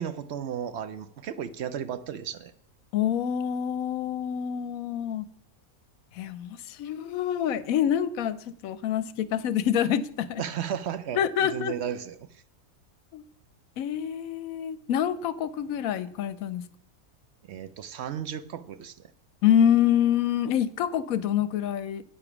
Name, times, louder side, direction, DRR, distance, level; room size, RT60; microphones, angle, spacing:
voice 1, 0.0-2.5 10.4-12.4 17.5-19.0, right 9 dB, 65° right, 12 dB, 0.7 m, -34 dB
voice 2, 2.9-5.2 6.2-10.4 11.1-11.7 13.1-13.2 13.8-16.6 19.4-22.0, left 9 dB, 75° left, 15 dB, 1.0 m, -26 dB
9.0 x 6.8 x 6.0 m, 0.64 s
omnidirectional pair, 1.5 m